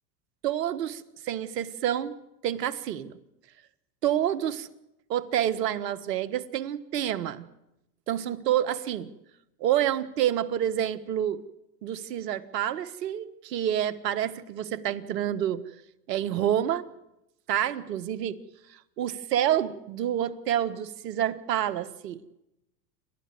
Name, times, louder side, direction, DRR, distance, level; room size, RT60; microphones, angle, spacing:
voice 1, 0.4-2.2 2.4-3.2 4.0-4.7 5.1-7.5 8.1-9.1 9.6-11.4 11.8-15.6 16.1-16.8 17.5-18.4 18.7-22.4, right 11 dB, 80° right, 13 dB, 1.6 m, -28 dB
29.0 x 13.0 x 9.6 m, 0.88 s
hypercardioid pair, 90°, 49 cm